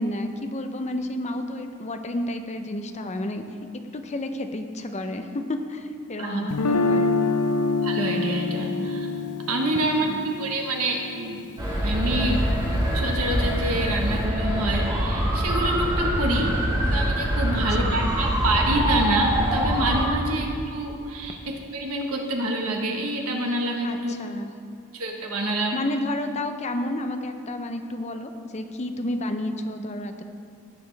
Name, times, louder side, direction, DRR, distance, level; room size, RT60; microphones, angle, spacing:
voice 1, 0.0-3.4 3.9-7.1 10.0-10.2 16.3-16.6 17.5-18.0 23.8-24.5 25.7-30.2, left 1 dB, 30° left, 6 dB, 0.6 m, -31 dB
Guitar, 6.5-12.5, left 3 dB, 90° left, 0.6 m, -27 dB
voice 2, 7.8-9.1 9.5-10.1 10.4-11.4 11.8-16.6 16.9-24.1 24.9-25.8, right 1 dB, 75° right, 1 dB, 1.3 m, -27 dB
sound 1, 11.6-20.1, equal, 20° right, 1.6 m, -24 dB
17.0 x 6.7 x 3.4 m, 2.4 s
head